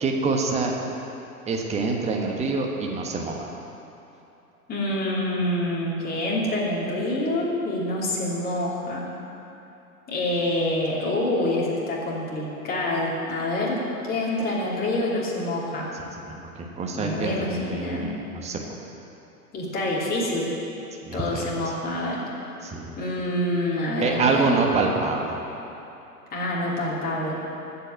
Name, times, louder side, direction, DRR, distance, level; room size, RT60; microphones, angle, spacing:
voice 1, 0.0-0.7 1.5-3.5 15.9-16.5 16.8-18.7 21.0-21.5 22.6-22.9 24.0-25.4, right 3 dB, 15° right, 1 dB, 1.3 m, -26 dB
voice 2, 4.7-9.0 10.1-15.9 16.9-18.1 19.5-20.5 21.1-22.2 23.0-24.7 26.3-27.4, left 1 dB, 20° left, -5 dB, 2.8 m, -26 dB
14.0 x 5.8 x 8.9 m, 2.9 s
figure-of-eight pair, 100°, 45 cm